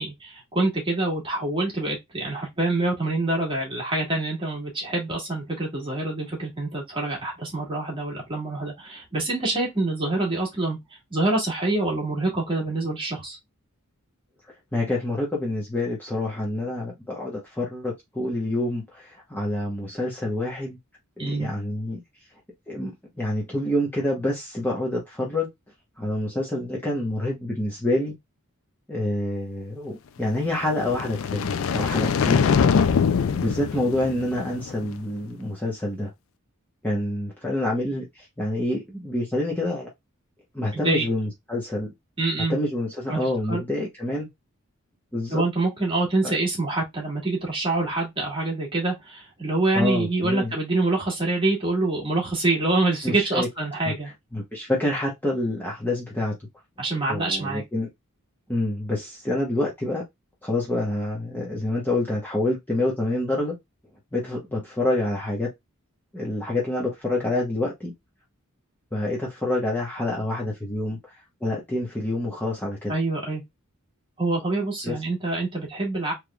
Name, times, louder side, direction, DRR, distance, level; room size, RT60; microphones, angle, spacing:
voice 1, 0.0-10.8 11.1-13.4 21.2-21.5 40.7-41.1 42.2-42.6 43.1-43.6 45.3-54.1 56.8-57.6 72.9-73.4 74.2-76.1, right 2 dB, 25° right, 1.6 m, -26 dB
voice 2, 14.7-20.8 21.2-22.0 22.7-25.5 26.0-28.1 28.9-32.5 33.3-36.1 36.8-39.9 40.5-41.9 42.5-44.3 45.1-45.4 46.2-46.3 49.7-50.5 53.0-53.5 53.9-54.0 54.3-56.4 56.8-57.9 58.5-60.0 60.4-63.6 64.1-65.5 66.1-67.9 68.9-71.2 71.4-72.9 74.8-75.0, left 1 dB, 10° left, 0.9 m, -27 dB
sound 1, 30.6-34.9, left 6 dB, 65° left, 0.4 m, -23 dB
3.5 x 3.1 x 2.3 m
head